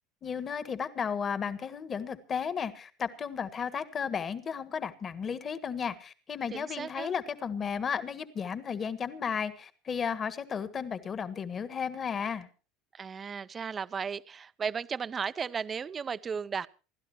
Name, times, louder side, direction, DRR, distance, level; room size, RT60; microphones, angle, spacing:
voice 1, 0.2-12.5, left 7 dB, 30° left, 14 dB, 1.6 m, -34 dB
voice 2, 6.5-7.1 12.9-16.7, right 6 dB, 25° right, 16 dB, 0.6 m, -35 dB
27.5 x 12.5 x 3.0 m, 0.35 s
supercardioid pair, 115°, 0 cm